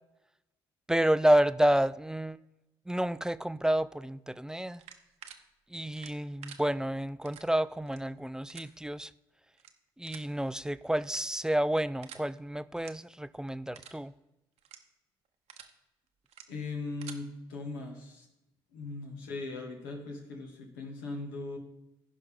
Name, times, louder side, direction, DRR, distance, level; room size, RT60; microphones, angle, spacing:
voice 1, 0.9-2.4 2.9-4.8 5.7-9.1 10.0-14.1, right 1 dB, 5° right, 15 dB, 0.4 m, -29 dB
sound 1, 4.7-5.4 5.9-6.6 7.3-7.4 7.8-8.0 8.5-8.6 9.5-9.7 10.1-10.3 11.0-11.5 12.0-12.2 12.7-12.9 13.3-13.4 13.7-14.0 14.6-14.8 15.3-15.7 16.3-16.4 16.8-17.2, right 8 dB, 70° right, 0.9 m, -48 dB
voice 2, 16.5-18.3 18.7-21.6, left 3 dB, 90° left, 1 dB, 1.7 m, -39 dB
15.5 x 5.4 x 3.6 m, 0.92 s
hypercardioid pair, 50°, 12 cm